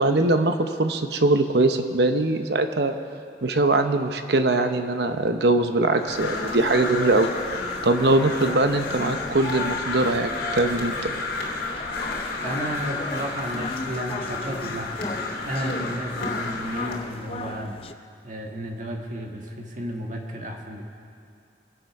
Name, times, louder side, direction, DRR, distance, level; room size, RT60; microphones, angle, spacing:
voice 1, 0.0-2.9 3.4-7.3 7.8-11.1, right 2 dB, 65° right, 7 dB, 0.8 m, -22 dB
Crow, 5.9-17.0, left 3 dB, 90° left, 3.0 m, -32 dB
sound 1, 6.1-17.9, left 3 dB, 30° left, 0.5 m, -36 dB
voice 2, 12.4-17.8 18.2-20.9, equal, 45° right, 1 dB, 1.6 m, -33 dB
23.0 x 8.0 x 5.9 m, 2.4 s
head